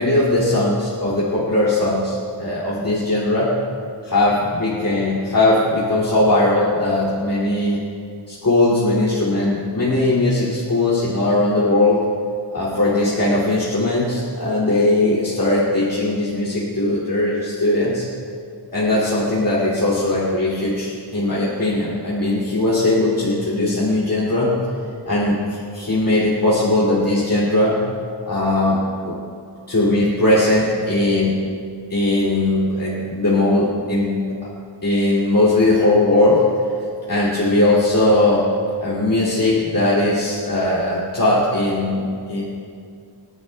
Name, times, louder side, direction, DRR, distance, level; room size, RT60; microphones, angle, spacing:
voice 1, 0.0-3.6 4.0-7.8 8.3-12.0 12.5-18.1 18.7-24.6 25.0-27.8 28.3-28.8 29.0-29.2 29.7-31.4 31.9-34.2 34.8-36.4 37.1-38.5 38.8-42.4, left 2 dB, 50° left, -7 dB, 2.8 m, -19 dB
27.0 x 11.0 x 2.4 m, 2.3 s
wide cardioid pair, 85°, 43 cm